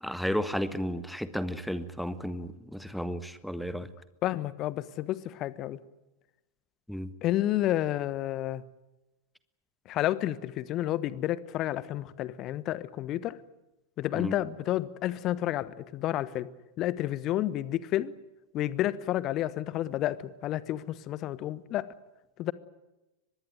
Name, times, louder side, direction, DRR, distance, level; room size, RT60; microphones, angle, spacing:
voice 1, 0.0-3.9 6.9-7.1 14.1-14.3, equal, ahead, 13 dB, 1.5 m, -33 dB
voice 2, 4.2-5.8 7.2-8.6 9.9-13.4 14.0-16.5 16.8-18.1 18.5-21.9 22.4-22.5, left 13 dB, 35° left, 18 dB, 1.2 m, -30 dB
24.0 x 21.0 x 9.3 m, 1.0 s
figure-of-eight pair, 90°, 0 cm